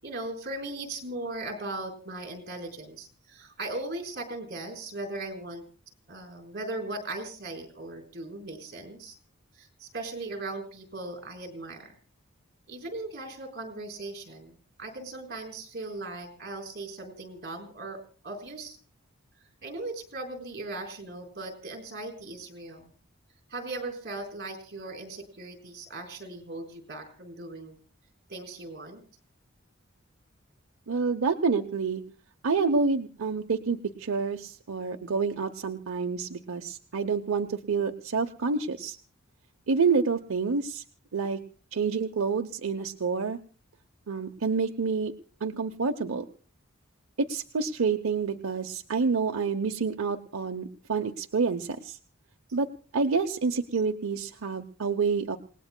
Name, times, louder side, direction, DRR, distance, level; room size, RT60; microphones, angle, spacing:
voice 1, 0.0-5.6 6.1-9.2 9.5-12.0 12.7-18.8 19.6-22.9 23.5-27.7 28.3-29.0, right 2 dB, 50° right, 3 dB, 4.1 m, -38 dB
voice 2, 30.9-32.0 32.4-39.0 39.7-40.8 41.1-41.4 41.7-43.4 44.1-45.1 45.4-46.2 47.2-52.0 52.5-52.7 52.9-55.4, right 4 dB, 85° right, 4 dB, 0.7 m, -28 dB
28.5 x 18.5 x 2.2 m, 0.39 s
head